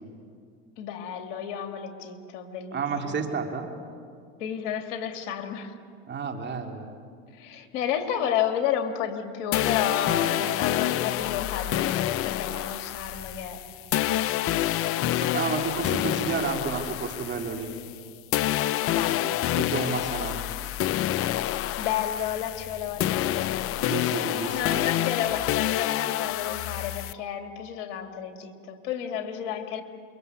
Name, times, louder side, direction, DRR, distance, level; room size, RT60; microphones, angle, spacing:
voice 1, 0.8-3.3 4.4-5.8 7.3-13.6 18.9-19.4 21.5-23.8 24.5-29.8, left 9 dB, 65° left, 6 dB, 2.8 m, -31 dB
voice 2, 2.7-3.7 6.1-6.9 15.3-17.7 19.6-20.5 23.8-24.6, right 5 dB, 30° right, 4 dB, 3.5 m, -31 dB
sound 1, 9.5-18.0 18.3-27.1, left 13 dB, 35° left, 0.7 m, -28 dB
27.5 x 24.0 x 8.3 m, 2.3 s
supercardioid pair, 110°, 37 cm